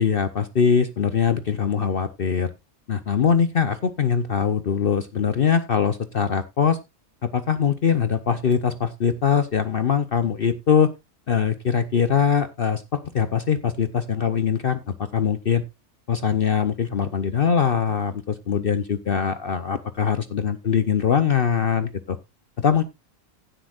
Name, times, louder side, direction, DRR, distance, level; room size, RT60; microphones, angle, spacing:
voice 1, 0.0-2.5 2.9-6.8 7.2-10.9 11.3-15.6 16.1-22.2 22.6-22.8, left 7 dB, 50° left, 12 dB, 0.9 m, -22 dB
16.0 x 7.9 x 2.4 m, 0.23 s
omnidirectional pair, 1.4 m